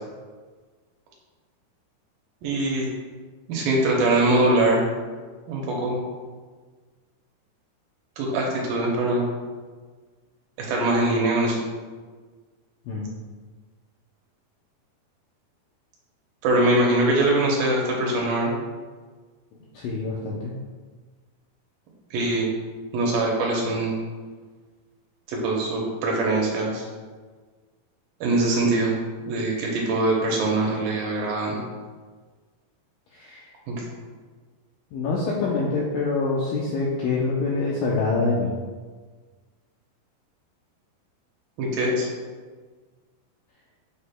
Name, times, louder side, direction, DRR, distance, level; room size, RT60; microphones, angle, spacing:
voice 1, 2.4-2.9 3.5-4.8 5.5-6.0 8.2-9.2 10.6-11.6 16.4-18.5 22.1-22.5 22.9-24.0 25.3-26.9 28.2-28.9 29.3-31.6 33.7-33.8 41.6-42.1, right 2 dB, 75° right, -2 dB, 2.4 m, -22 dB
voice 2, 19.5-20.5 33.1-33.5 34.9-38.5, left 3 dB, 85° left, -4 dB, 1.9 m, -26 dB
7.0 x 6.8 x 2.2 m, 1.4 s
omnidirectional pair, 4.7 m